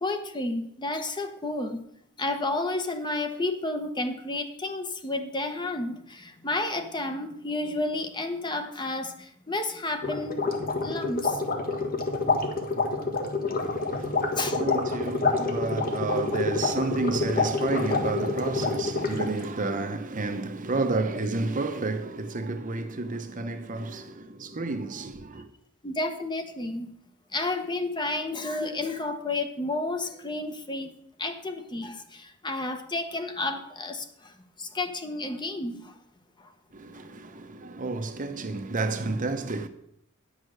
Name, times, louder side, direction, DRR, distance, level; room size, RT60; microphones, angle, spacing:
voice 1, 0.0-1.8 2.2-10.5 10.8-11.4 14.4-14.6 25.8-26.9 27.3-30.9 31.2-36.0 36.4-36.5, left 2 dB, 20° left, 0.9 m, -31 dB
sound 1, 10.0-19.4, left 3 dB, 45° left, 1.4 m, -27 dB
voice 2, 13.6-25.4 36.7-39.7, right 3 dB, 40° right, 0.8 m, -31 dB
9.9 x 6.4 x 6.5 m
head